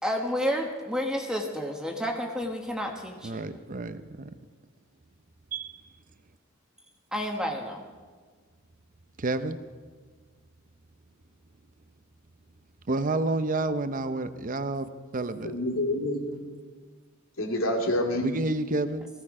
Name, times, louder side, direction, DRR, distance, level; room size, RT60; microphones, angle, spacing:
voice 1, 0.0-3.4 7.1-7.8, equal, 5° right, 1 dB, 1.4 m, -30 dB
voice 2, 3.2-4.3 5.5-5.8 9.2-9.6 12.9-15.5 18.2-19.1, right 2 dB, 40° right, 11 dB, 0.7 m, -30 dB
voice 3, 15.4-16.6 17.4-18.3, left 1 dB, 75° left, 1 dB, 2.7 m, -28 dB
18.5 x 15.5 x 5.0 m, 1.5 s
head